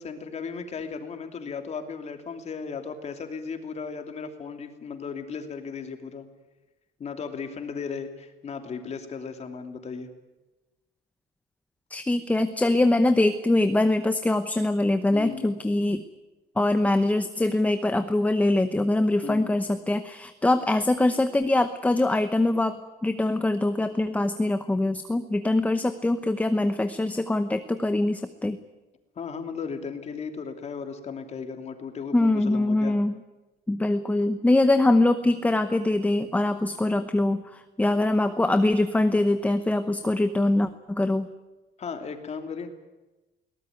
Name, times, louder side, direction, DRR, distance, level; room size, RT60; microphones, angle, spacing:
voice 1, 0.0-6.3 7.0-10.1 15.1-15.5 19.2-19.5 29.2-33.0 41.8-42.7, left 5 dB, 35° left, 6 dB, 2.9 m, -36 dB
voice 2, 11.9-16.0 16.6-28.6 32.1-33.2 33.7-41.3, left 2 dB, 10° left, 10 dB, 0.9 m, -23 dB
22.0 x 19.0 x 9.4 m, 1.1 s
cardioid pair, 155°, 19 cm